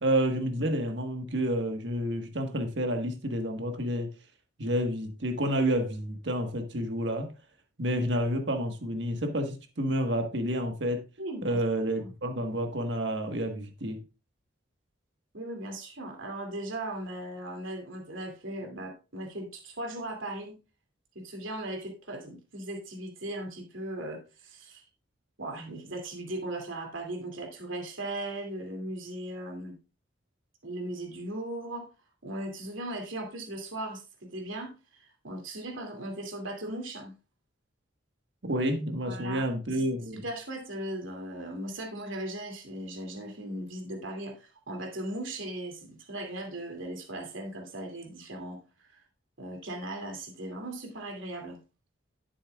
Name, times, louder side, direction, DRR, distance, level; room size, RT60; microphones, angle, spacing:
voice 1, 0.0-4.1 4.6-7.3 7.8-11.0 11.4-14.0 38.4-40.2, equal, 65° right, 1.5 m, -29 dB
voice 2, 11.2-11.6 12.0-12.1 15.3-20.5 21.1-24.8 25.4-29.7 30.6-31.9 32.2-34.0 34.3-37.1 39.0-39.8 40.1-49.0 49.4-51.6, right 1 dB, 80° right, 2.6 m, -38 dB
11.5 x 8.5 x 2.4 m
head